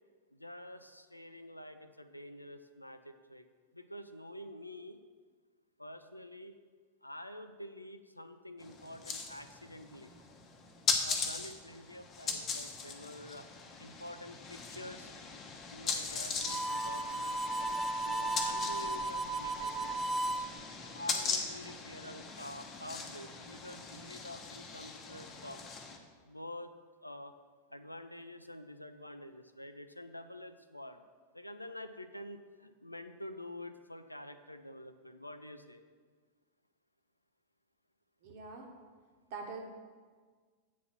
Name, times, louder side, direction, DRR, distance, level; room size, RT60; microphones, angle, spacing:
voice 1, 0.3-3.5 3.7-5.0 5.8-6.6 7.0-10.1 11.0-13.5 13.8-15.1 15.7-17.8 18.0-19.9 20.8-25.6 26.2-26.7 27.0-27.3 27.7-31.0 31.3-35.8, left 1 dB, 85° left, 9 dB, 0.4 m, -48 dB
sound 1, 8.6-26.0, left 5 dB, 30° left, 0.9 m, -40 dB
Harmonica, 16.4-20.5, right 1 dB, 15° right, 0.6 m, -35 dB
voice 2, 38.2-38.7 39.3-39.6, right 4 dB, 50° right, 2 dB, 1.2 m, -43 dB
8.2 x 4.1 x 5.9 m, 1.5 s
figure-of-eight pair, 90°, 0 cm